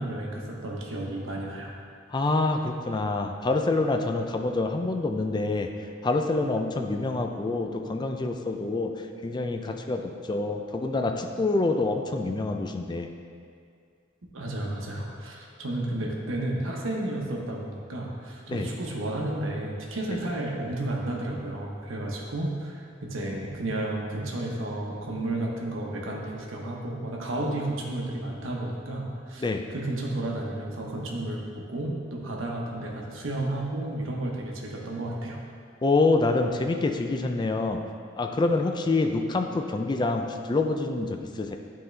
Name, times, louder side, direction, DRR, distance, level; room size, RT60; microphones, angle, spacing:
voice 1, 0.0-1.7 14.3-29.4 29.7-35.4, right 1 dB, 85° right, -1 dB, 1.0 m, -32 dB
voice 2, 2.1-5.7 6.0-8.9 9.2-13.1 18.5-18.7 29.4-29.6 35.8-37.8 38.2-41.5, left 3 dB, 20° left, 4 dB, 0.3 m, -26 dB
10.5 x 3.7 x 3.3 m, 2.3 s
head